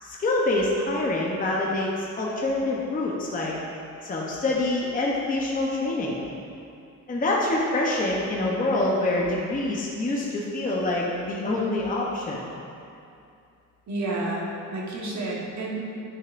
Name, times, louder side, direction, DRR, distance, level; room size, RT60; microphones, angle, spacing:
voice 1, 0.0-3.5 4.0-6.2 7.1-12.4, left 2 dB, 25° left, -3 dB, 0.8 m, -26 dB
voice 2, 13.9-15.8, right 2 dB, 60° right, -3 dB, 1.3 m, -30 dB
9.6 x 5.3 x 2.5 m, 2.5 s
cardioid pair, 110°, 32 cm